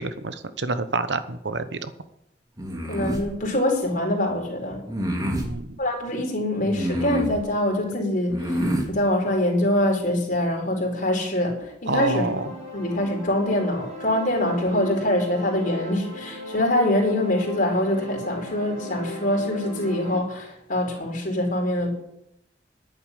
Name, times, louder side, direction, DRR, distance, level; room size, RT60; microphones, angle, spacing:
voice 1, 0.0-1.9 5.2-5.7 11.9-12.5, right 3 dB, 80° right, 12 dB, 1.0 m, -28 dB
sound 1, 2.6-3.3 4.9-5.5 6.7-7.4 8.3-8.9, right 1 dB, 20° right, 2.5 m, -27 dB
voice 2, 2.9-4.8 5.8-12.3 12.7-21.9, left 1 dB, 50° left, 1 dB, 4.4 m, -24 dB
sound 2, 11.8-20.2, equal, 40° right, 5.0 m, -37 dB
11.0 x 8.5 x 9.9 m, 0.80 s
head